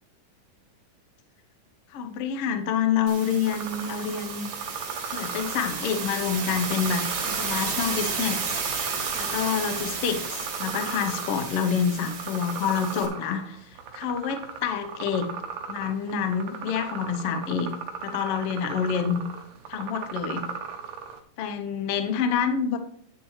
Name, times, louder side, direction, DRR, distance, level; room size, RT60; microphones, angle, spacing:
voice 1, 1.9-4.5 5.1-8.6 8.8-13.6 13.9-15.4 15.7-17.7 18.0-19.2 19.7-20.4 21.4-22.8, left 7 dB, 80° left, 8 dB, 1.3 m, -27 dB
sound 1, 3.1-13.1, right 5 dB, 60° right, 3.0 m, -32 dB
sound 2, 3.5-21.2, right 6 dB, 75° right, 1.5 m, -38 dB
10.5 x 8.6 x 3.2 m, 0.63 s
omnidirectional pair, 4.1 m